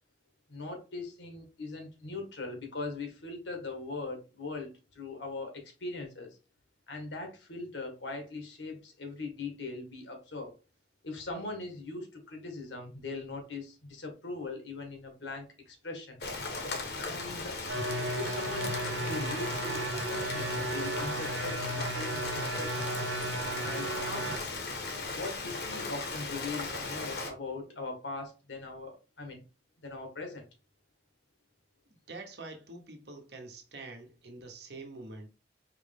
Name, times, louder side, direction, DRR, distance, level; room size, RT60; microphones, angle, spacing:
voice 1, 0.5-6.4 6.9-10.5 11.0-16.2 17.0-17.6 18.2-23.0 23.6-24.6 25.1-29.4 29.8-30.4, left 3 dB, 80° left, 1.6 m, -40 dB
Rain, 16.2-27.3, left 3 dB, 60° left, 1.1 m, -37 dB
sound 1, 17.7-24.4, right 2 dB, 85° right, 0.7 m, -35 dB
voice 2, 31.9-35.3, right 3 dB, 65° right, 1.1 m, -46 dB
4.8 x 3.2 x 3.4 m
head